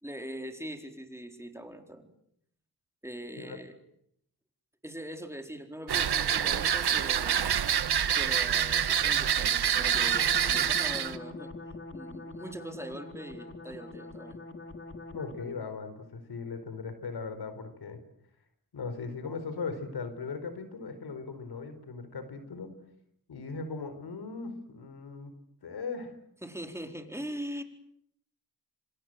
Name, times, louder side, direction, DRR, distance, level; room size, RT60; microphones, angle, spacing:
voice 1, 0.0-2.1 3.0-3.8 4.8-7.4 8.2-11.5 11.9-14.4 26.4-27.6, equal, 5° right, 5 dB, 4.4 m, -41 dB
sound 1, 5.9-11.2, right 8 dB, 80° right, 1.4 m, -26 dB
sound 2, 9.9-15.6, left 2 dB, 35° left, 3.3 m, -44 dB
voice 2, 15.1-18.0 18.7-22.8 23.3-25.3 25.6-26.1, left 4 dB, 85° left, 10 dB, 4.3 m, -38 dB
26.5 x 26.5 x 7.8 m, 0.73 s
cardioid pair, 70°, 38 cm